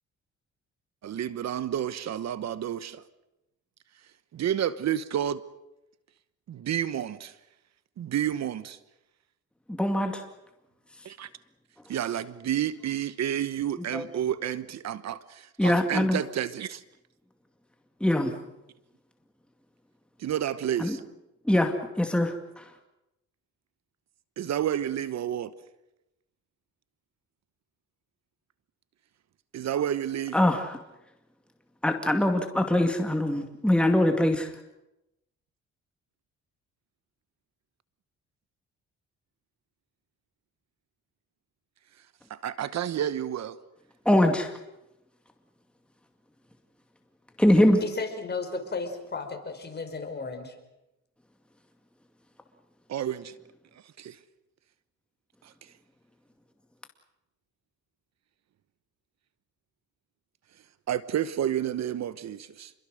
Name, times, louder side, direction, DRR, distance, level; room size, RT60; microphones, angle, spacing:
voice 1, 1.0-3.0 4.3-5.4 6.5-7.4 8.0-8.8 11.0-11.3 11.9-16.8 20.2-21.0 24.4-25.5 29.5-30.4 42.3-43.6 52.9-53.4 54.0-54.2 55.4-55.7 60.9-62.7, right 10 dB, 60° right, 1.1 m, -30 dB
voice 2, 9.7-10.2 13.9-14.0 15.6-16.2 18.0-18.3 20.8-21.0 21.5-22.7 30.3-30.8 31.8-34.5 44.1-44.5 47.4-47.8, left 1 dB, 5° left, 2.3 m, -23 dB
voice 3, 47.8-50.5, left 4 dB, 35° left, 5.2 m, -34 dB
28.0 x 22.5 x 6.5 m
cardioid pair, 90°, 30 cm